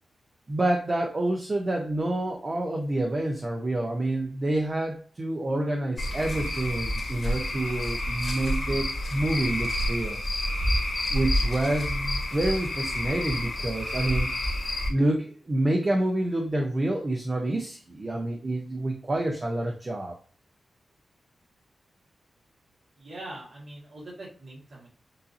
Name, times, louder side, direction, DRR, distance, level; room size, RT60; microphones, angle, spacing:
voice 1, 0.5-10.2 11.1-14.3 14.9-20.1, right 1 dB, 30° right, 1 dB, 0.7 m, -28 dB
Cricket / Frog, 6.0-14.9, left 1 dB, 50° left, 1.5 m, -29 dB
voice 2, 23.0-24.9, right 1 dB, 60° right, -6 dB, 1.7 m, -42 dB
6.7 x 2.7 x 2.7 m, 0.41 s
wide cardioid pair, 140°, 0 cm